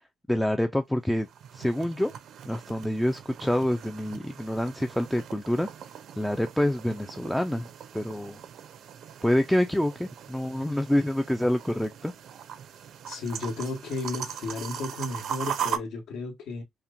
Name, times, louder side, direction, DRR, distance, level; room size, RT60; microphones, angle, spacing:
voice 1, 0.3-1.3 1.5-2.1 2.5-5.7 6.2-7.7 7.9-8.4 9.2-12.1, left 1 dB, 5° left, 0.3 m, -27 dB
sound 1, 1.0-15.8, right 8 dB, 60° right, 0.5 m, -40 dB
voice 2, 13.0-16.6, left 3 dB, 75° left, 1.5 m, -33 dB
5.6 x 2.2 x 2.5 m
cardioid pair, 175°, 0 cm